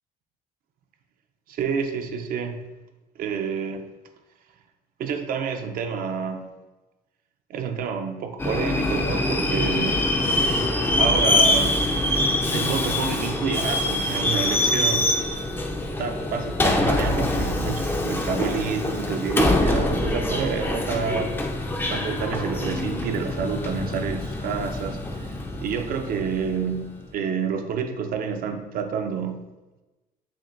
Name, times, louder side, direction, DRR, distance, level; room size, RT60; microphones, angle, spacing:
voice 1, 1.5-2.7 3.2-3.9 5.0-6.5 7.5-10.0 11.0-12.0 12.5-15.1 16.0-21.4 21.9-25.4 25.6-29.4, right 6 dB, 60° right, 6 dB, 0.5 m, -28 dB
Subway metro underground, 8.4-26.8, left 1 dB, 15° left, 0.4 m, -24 dB
5.9 x 2.2 x 2.5 m, 1.1 s
cardioid pair, 110°, 17 cm